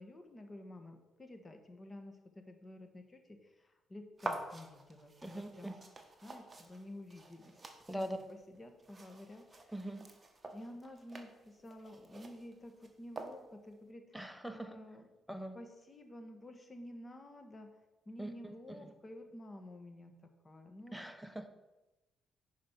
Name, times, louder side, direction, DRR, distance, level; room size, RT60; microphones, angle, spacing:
voice 1, 0.0-5.8 6.2-7.6 8.0-9.7 10.5-14.2 14.5-15.1 15.5-17.8 18.0-21.0, left 1 dB, 25° left, 6 dB, 1.5 m, -51 dB
sound 1, 4.2-13.7, right 2 dB, 25° right, 1.4 m, -48 dB
voice 2, 5.2-5.7 7.9-8.2 9.7-10.1 14.1-14.9 15.3-15.6 18.2-18.9 20.9-21.5, right 1 dB, ahead, 9 dB, 0.9 m, -42 dB
10.5 x 4.9 x 6.0 m, 1.1 s
cardioid pair, 90°, 0 cm